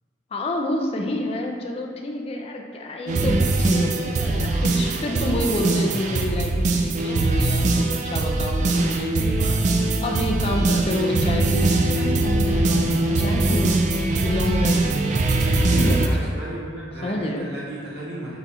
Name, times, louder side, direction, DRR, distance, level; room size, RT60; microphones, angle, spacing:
voice 1, 0.3-9.6 10.0-13.8 14.2-14.8 15.8-16.4 17.0-17.5, left 1 dB, 35° left, 1 dB, 0.4 m, -28 dB
sound 1, 3.1-16.1, right 2 dB, 45° right, 0.3 m, -21 dB
voice 2, 15.6-18.4, right 1 dB, 65° right, -6 dB, 1.1 m, -35 dB
4.0 x 2.3 x 4.1 m, 2.1 s
head